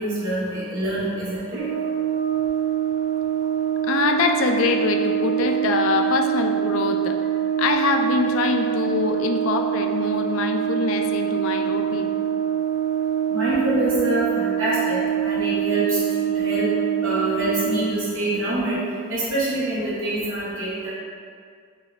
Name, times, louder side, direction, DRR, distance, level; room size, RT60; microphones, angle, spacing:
voice 1, 0.0-1.6 13.3-16.7 17.0-18.8 19.1-20.9, right 1 dB, 60° right, -8 dB, 0.8 m, -25 dB
Brass instrument, 1.5-17.9, right 10 dB, 85° right, 1.1 m, -24 dB
voice 2, 3.8-7.2 7.6-12.1, left 4 dB, 70° left, 5 dB, 0.3 m, -24 dB
6.3 x 2.2 x 2.2 m, 2.1 s
head